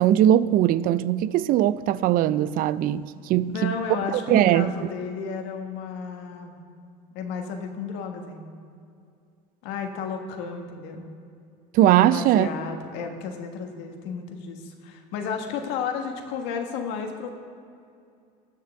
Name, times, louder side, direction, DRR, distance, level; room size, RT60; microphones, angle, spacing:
voice 1, 0.0-3.8 4.1-4.7 11.7-12.5, right 12 dB, 45° right, 0.4 m, -20 dB
voice 2, 3.5-6.7 7.1-8.4 9.6-11.1 12.1-17.3, left 6 dB, 65° left, 1.3 m, -33 dB
19.5 x 6.6 x 3.5 m
supercardioid pair, 105°, 20 cm